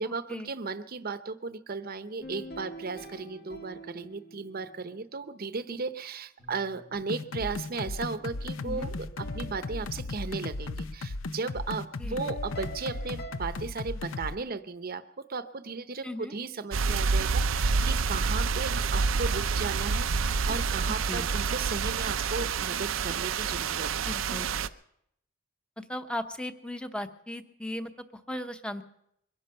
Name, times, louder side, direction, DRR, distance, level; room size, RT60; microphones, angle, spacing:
voice 1, 0.0-15.0 15.3-24.2, right 4 dB, 50° right, 12 dB, 0.8 m, -36 dB
sound 1, 2.2-5.1 6.4-10.9 12.2-13.4, equal, 55° left, 1.6 m, -47 dB
sound 2, 7.1-14.4, left 2 dB, 90° left, 0.7 m, -36 dB
voice 2, 8.6-8.9 12.0-12.2 16.0-16.4 20.9-21.3 24.0-24.5 25.8-28.8, left 1 dB, 5° left, 8 dB, 0.8 m, -37 dB
sound 3, 16.7-24.7, right 5 dB, 80° right, 0.5 m, -28 dB
23.0 x 10.5 x 5.6 m, 0.74 s
head